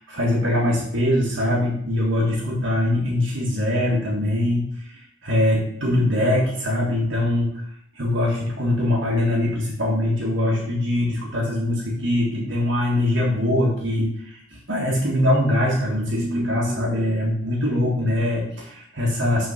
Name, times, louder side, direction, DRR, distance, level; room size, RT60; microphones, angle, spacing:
voice 1, 0.0-7.5 8.0-19.5, left 1 dB, 55° right, -4 dB, 1.7 m, -22 dB
6.3 x 4.9 x 5.8 m, 0.67 s
head